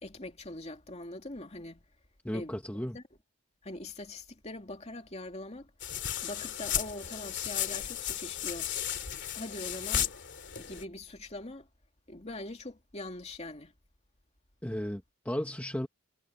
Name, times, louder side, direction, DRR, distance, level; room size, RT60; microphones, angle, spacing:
voice 1, 0.0-1.8 2.3-2.5 2.9-3.0 3.6-5.7 6.2-8.7 9.3-10.1 10.6-11.7 12.1-13.7, left 2 dB, 30° left, 2.6 m, -42 dB
voice 2, 2.2-3.0 14.6-15.9, equal, 5° left, 1.2 m, -35 dB
sound 1, 5.8-10.8, left 10 dB, 55° left, 2.6 m, -34 dB
head